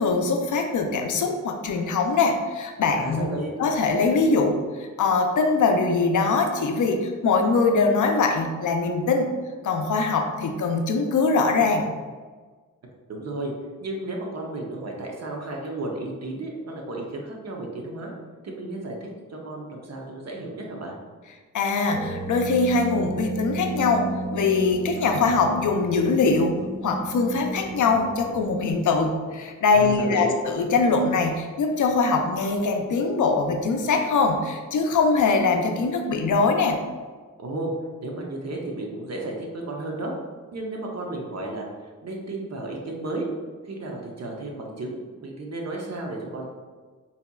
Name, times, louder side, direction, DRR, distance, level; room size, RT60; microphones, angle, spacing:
voice 1, 0.0-3.3 3.6-9.3 9.6-11.9 21.5-24.1 24.3-26.6 26.8-36.8, left 4 dB, 70° left, 4 dB, 0.5 m, -22 dB
voice 2, 3.0-3.5 13.1-13.5 13.8-18.1 18.4-20.9 29.7-30.3 37.4-37.7 38.0-40.1 40.5-41.7 42.0-43.3 43.6-46.5, right 2 dB, 55° right, 0 dB, 0.7 m, -33 dB
sound 1, 21.9-28.6, right 2 dB, 25° right, 0.3 m, -33 dB
4.0 x 2.8 x 2.3 m, 1.4 s
cardioid pair, 80°, 32 cm